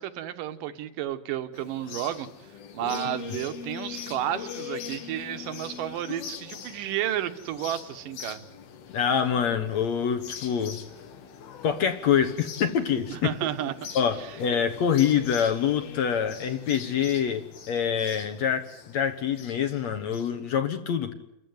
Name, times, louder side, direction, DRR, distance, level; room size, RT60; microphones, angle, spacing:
voice 1, 0.0-2.3 2.7-8.4 13.1-13.9 14.2-14.3, right 11 dB, 70° right, 11 dB, 2.6 m, -32 dB
sound 1, 1.5-20.3, left 7 dB, 90° left, 3.8 m, -42 dB
voice 2, 8.9-10.8 11.6-13.3 14.0-21.1, left 8 dB, 60° left, 8 dB, 2.1 m, -25 dB
29.5 x 14.5 x 9.5 m, 0.84 s
omnidirectional pair, 4.3 m